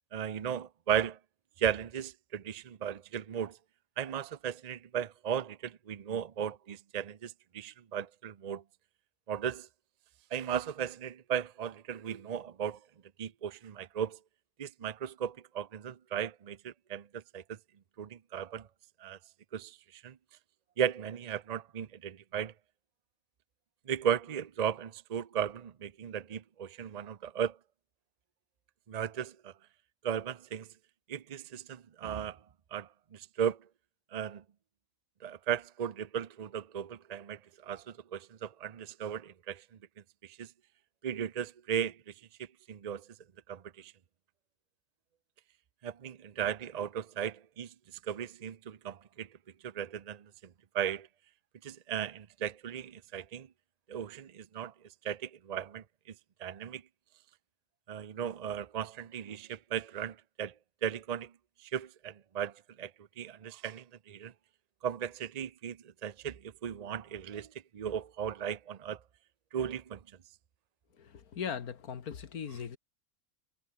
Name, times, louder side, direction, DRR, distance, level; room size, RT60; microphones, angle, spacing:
voice 1, 0.1-1.2 1.6-3.6 4.0-8.6 9.3-9.7 10.3-12.8 13.2-14.2 14.6-17.6 18.0-18.7 19.0-19.2 19.5-20.1 20.8-22.5 23.9-27.6 28.9-29.5 30.0-30.7 31.1-32.4 32.7-33.6 34.1-34.4 35.2-39.6 40.2-40.5 41.0-42.0 42.7-43.0 43.5-43.9 45.8-47.7 48.1-49.3 49.6-50.2 50.7-51.1 51.6-53.5 53.9-54.7 55.0-55.8 56.4-56.8 57.9-60.5 60.8-61.3 61.6-62.5 62.8-62.9 63.2-64.3 64.8-67.5 67.7-69.0 69.5-70.0, right 8 dB, 55° right, 0.4 m, -36 dB
voice 2, 71.0-72.8, left 7 dB, 90° left, 2.0 m, -39 dB
omnidirectional pair, 1.5 m